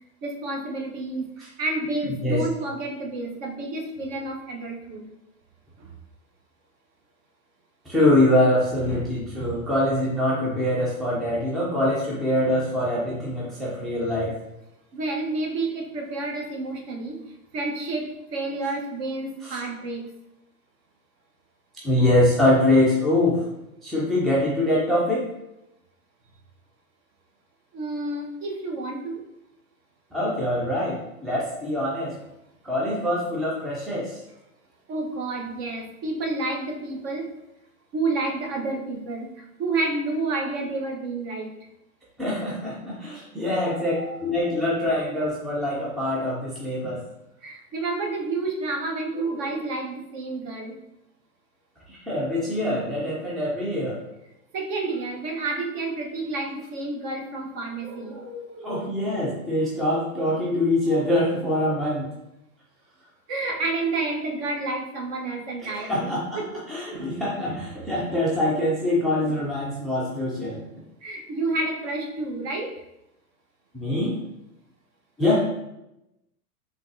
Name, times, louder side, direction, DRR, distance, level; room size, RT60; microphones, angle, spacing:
voice 1, 0.2-5.0 5.8-5.9 8.8-9.5 14.9-17.2 17.5-20.0 27.7-29.2 34.9-37.3 37.9-41.5 43.4-44.2 47.4-50.8 54.5-58.8 60.9-61.3 63.3-66.5 66.9-67.1 71.0-72.7, right 2 dB, 40° right, 1 dB, 1.0 m, -30 dB
voice 2, 7.9-14.4 19.4-19.6 21.8-23.4 23.8-25.3 30.1-32.2 32.6-34.2 42.2-43.9 44.2-47.0 51.9-54.0 58.6-62.1 65.6-66.4 66.7-70.6 73.7-74.2 75.2-75.5, left 1 dB, ahead, -6 dB, 0.5 m, -24 dB
5.4 x 3.1 x 2.6 m, 0.87 s
hypercardioid pair, 115°, 46 cm